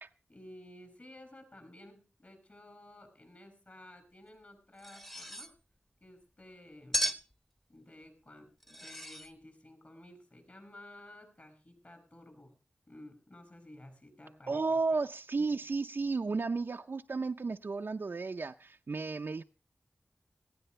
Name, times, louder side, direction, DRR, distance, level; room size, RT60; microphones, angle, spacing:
voice 1, 0.3-5.5 6.0-7.2 7.7-12.6 12.9-14.8 15.4-15.5, left 1 dB, 45° left, 7 dB, 7.3 m, -54 dB
sound 1, 4.8-5.5 6.9-7.3 8.6-9.3, right 1 dB, 10° left, 1.3 m, -35 dB
voice 2, 14.5-19.4, right 4 dB, 70° right, 4 dB, 0.6 m, -33 dB
18.0 x 15.5 x 3.2 m, 0.34 s
wide cardioid pair, 50°, 4 cm